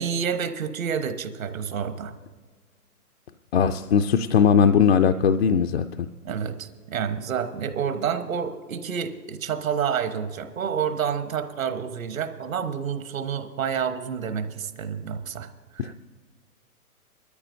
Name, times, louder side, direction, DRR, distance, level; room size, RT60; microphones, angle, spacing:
voice 1, 0.0-2.1 6.2-15.9, right 7 dB, 65° right, 9 dB, 1.2 m, -29 dB
voice 2, 3.5-6.1 15.8-15.9, left 7 dB, 45° left, 7 dB, 0.4 m, -19 dB
21.5 x 13.0 x 2.7 m, 1.5 s
figure-of-eight pair, 120°, 45 cm